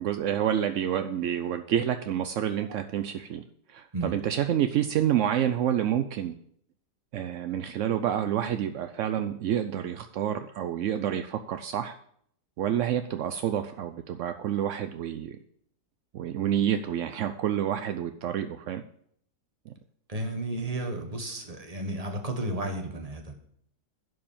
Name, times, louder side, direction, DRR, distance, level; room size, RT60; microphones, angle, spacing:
voice 1, 0.0-3.4 3.7-6.3 7.1-12.0 12.6-15.4 16.1-18.8 19.7-19.8, right 10 dB, 75° right, 9 dB, 0.7 m, -28 dB
voice 2, 20.1-23.3, right 1 dB, 25° right, 4 dB, 1.4 m, -33 dB
11.0 x 4.8 x 7.3 m, 0.66 s
omnidirectional pair, 1.8 m